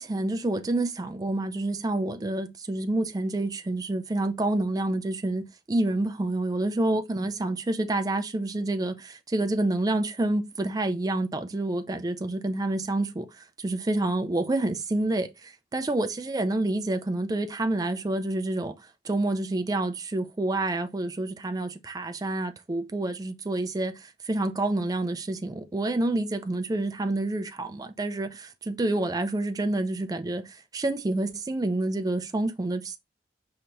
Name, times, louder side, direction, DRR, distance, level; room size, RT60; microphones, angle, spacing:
voice 1, 0.0-18.7 19.0-33.0, right 2 dB, 20° right, 0.4 m, -28 dB
5.2 x 2.9 x 3.2 m
head